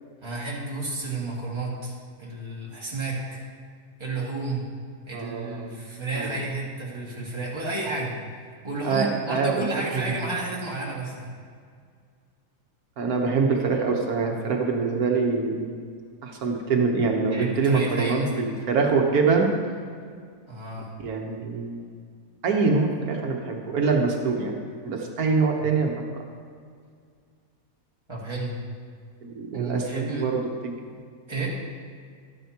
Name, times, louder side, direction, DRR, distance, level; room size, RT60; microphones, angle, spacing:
voice 1, 0.2-3.4 4.0-4.6 5.1-8.1 8.6-11.3 17.3-18.3 20.5-20.9 28.1-28.6 29.5-30.3 31.3-31.5, right 3 dB, 20° right, -5 dB, 1.9 m, -31 dB
voice 2, 5.1-5.7 6.1-6.3 8.8-9.6 9.9-10.0 13.0-15.8 16.2-19.5 21.0-21.9 22.4-24.5 24.8-25.9 29.2-30.8, right 4 dB, 90° right, 1 dB, 1.5 m, -24 dB
13.0 x 9.3 x 2.9 m, 2.1 s
omnidirectional pair, 1.5 m